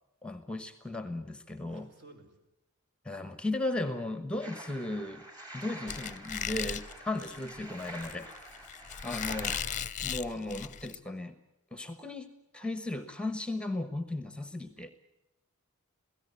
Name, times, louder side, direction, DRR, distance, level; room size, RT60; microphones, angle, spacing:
voice 1, 0.2-1.9 3.0-5.3 5.5-8.3 9.0-9.6 10.0-11.4 11.7-12.3 12.5-14.9, left 2 dB, 5° left, 11 dB, 1.1 m, -36 dB
voice 2, 1.7-2.4, right 1 dB, 55° right, 6 dB, 4.8 m, -57 dB
sound 1, 4.4-9.6, right 1 dB, 20° right, 5.7 m, -46 dB
Squeak, 5.9-11.0, left 8 dB, 35° left, 0.8 m, -37 dB
27.5 x 17.0 x 8.3 m, 0.93 s
head